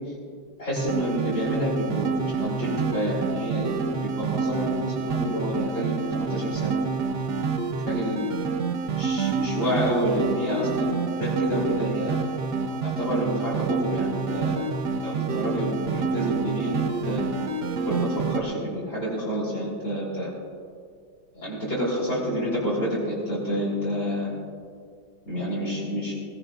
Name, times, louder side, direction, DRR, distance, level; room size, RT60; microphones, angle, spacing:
voice 1, 0.6-3.7 4.0-6.8 7.8-8.4 9.0-12.2 12.8-14.6 15.0-17.3 17.9-20.3 21.3-24.3 25.3-26.1, equal, 35° left, -8 dB, 4.1 m, -28 dB
sound 1, 0.7-18.4, right 4 dB, 60° right, 1.4 m, -28 dB
21.0 x 16.5 x 2.5 m, 2.1 s
omnidirectional pair, 2.2 m